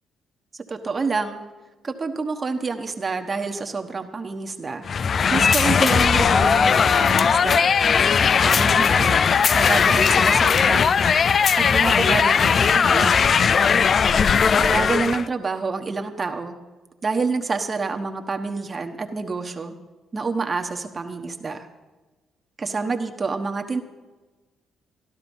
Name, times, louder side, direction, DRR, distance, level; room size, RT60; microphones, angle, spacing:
voice 1, 0.7-1.4 1.8-4.9 5.3-7.7 8.4-9.2 9.5-11.0 11.5-13.2 14.6-16.5 17.0-19.7 20.1-21.7 22.6-23.8, right 4 dB, 30° right, 5 dB, 1.1 m, -27 dB
sound 1, 4.8-15.3, left 6 dB, 50° left, 0.3 m, -18 dB
14.5 x 12.0 x 5.4 m, 1.2 s
cardioid pair, 90°, 0 cm